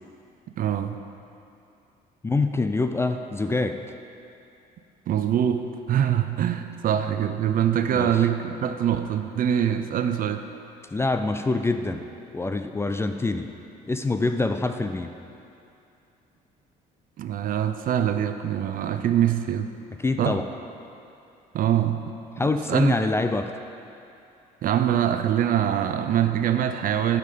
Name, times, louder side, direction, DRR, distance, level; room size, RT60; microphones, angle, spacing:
voice 1, 0.6-1.0 5.1-10.4 17.2-19.7 20.2-20.4 21.5-22.2 22.7-22.9 24.6-27.2, right 10 dB, 55° right, 9 dB, 0.6 m, -24 dB
voice 2, 2.2-3.8 7.9-8.1 10.9-12.1 12.3-13.5 13.9-15.1 20.0-20.5 22.4-23.5, left 3 dB, 15° left, 7 dB, 0.4 m, -25 dB
9.5 x 5.8 x 6.8 m, 2.7 s
cardioid pair, 110°, 17 cm